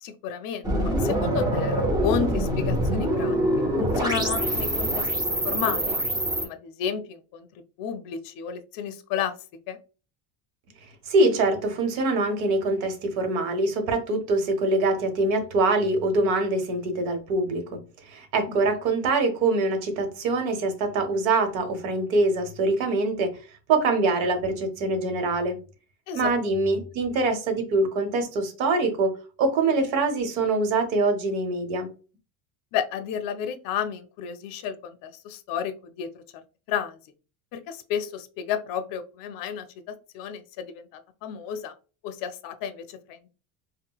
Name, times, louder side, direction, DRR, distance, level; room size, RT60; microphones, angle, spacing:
voice 1, 0.0-3.4 3.8-5.1 5.4-6.0 6.4-7.5 7.8-9.3 9.7-9.8 18.5-18.6 26.1-26.3 32.7-36.1 36.7-37.0 37.5-39.7 40.1-40.7 41.2-41.7 42.0-43.3, left 8 dB, 50° left, 0.5 m, -31 dB
sound 1, 0.6-6.5, right 1 dB, 10° right, 0.5 m, -25 dB
voice 2, 11.1-17.8 18.1-23.3 23.7-25.6 26.1-29.1 29.4-31.9, right 3 dB, 75° right, 1.0 m, -24 dB
3.7 x 2.1 x 2.3 m
supercardioid pair, 125°, 45 cm